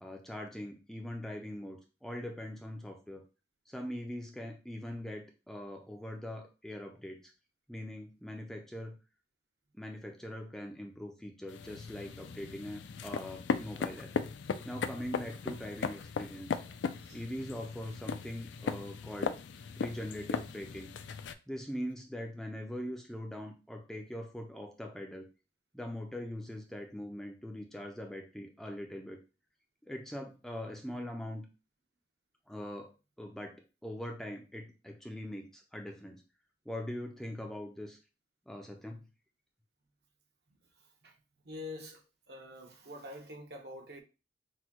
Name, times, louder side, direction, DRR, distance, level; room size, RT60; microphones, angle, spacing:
voice 1, 0.0-3.2 3.7-7.3 7.7-9.0 9.7-14.1 14.6-16.6 17.1-19.4 19.8-20.9 21.5-25.3 25.7-29.2 29.9-31.5 32.5-32.9 33.2-33.6 33.8-36.2 36.7-38.0 38.5-39.0, left 1 dB, ahead, 0.4 m, -42 dB
sound 1, 11.5-21.3, left 5 dB, 80° left, 0.4 m, -38 dB
voice 2, 40.7-41.2 41.4-44.0, left 2 dB, 60° right, 1.0 m, -46 dB
6.0 x 2.2 x 2.9 m
head